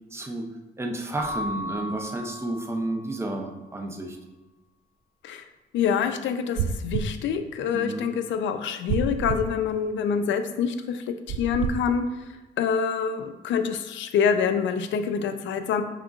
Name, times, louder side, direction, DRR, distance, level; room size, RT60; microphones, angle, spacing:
voice 1, 0.1-0.5 0.8-4.2 7.7-8.1, right 2 dB, 15° right, 2 dB, 0.6 m, -31 dB
Keyboard (musical) / Bell, 1.2-3.6, left 2 dB, 55° left, 1.1 m, -36 dB
voice 2, 5.7-15.8, left 6 dB, 70° left, 9 dB, 0.4 m, -26 dB
sound 1, 6.6-7.2 8.9-9.5 11.3-11.8, right 6 dB, 85° right, 0.4 m, -28 dB
5.0 x 3.6 x 2.4 m, 1.1 s
cardioid pair, 90°, 20 cm